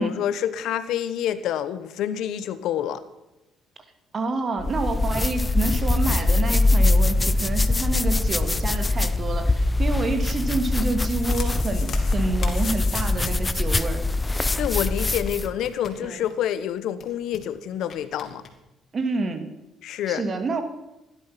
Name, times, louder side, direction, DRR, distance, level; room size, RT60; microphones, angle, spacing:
voice 1, 0.0-3.0 14.6-18.4 19.8-20.2, left 10 dB, 75° left, 13 dB, 1.2 m, -27 dB
voice 2, 4.1-14.0 16.0-16.2 18.9-19.5 20.1-20.6, right 3 dB, 45° right, 7 dB, 2.5 m, -28 dB
sound 1, 4.6-15.5, left 2 dB, 20° left, 0.9 m, -23 dB
sound 2, 11.1-13.6 13.8-13.9 14.1-14.2 14.6-16.4 16.7-16.8 17.0-17.5 17.9-18.5, left 6 dB, 55° left, 3.2 m, -39 dB
16.5 x 12.0 x 6.0 m, 0.97 s
supercardioid pair, 70°, 0 cm